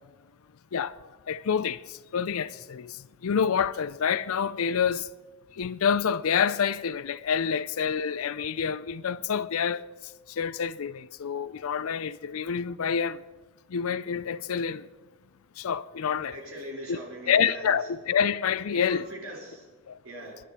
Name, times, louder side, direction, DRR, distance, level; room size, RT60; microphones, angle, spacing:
voice 1, 1.3-3.0 3.2-5.1 5.6-9.8 10.4-13.2 13.7-14.8 15.6-16.4 16.9-17.0 17.3-19.0 19.9-20.0, left 7 dB, 75° left, 0.4 m, -27 dB
voice 2, 16.3-17.7 18.7-19.8 20.0-20.4, right 1 dB, 65° right, 4.6 m, -40 dB
23.0 x 10.0 x 4.2 m
head